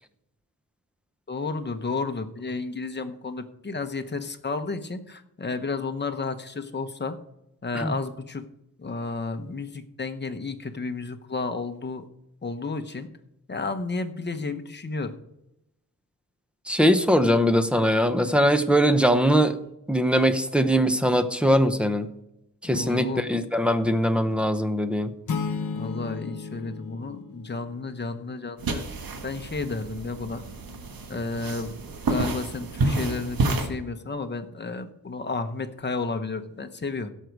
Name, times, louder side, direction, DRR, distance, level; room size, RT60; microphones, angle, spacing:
voice 1, 1.3-7.2 7.6-8.5 8.8-12.0 12.4-13.1 13.5-15.1 22.6-23.3 25.7-28.9 29.2-30.4 31.1-31.7 32.1-37.1, left 3 dB, 30° left, 7 dB, 1.0 m, -32 dB
voice 2, 16.7-19.6 19.9-22.1 22.6-25.1, equal, 5° right, 9 dB, 0.8 m, -21 dB
sound 1, 25.3-28.1, left 5 dB, 60° left, 1.0 m, -33 dB
sound 2, 28.6-33.7, right 2 dB, 85° right, 1.5 m, -29 dB
16.5 x 6.5 x 4.7 m, 0.87 s
wide cardioid pair, 125°, 34 cm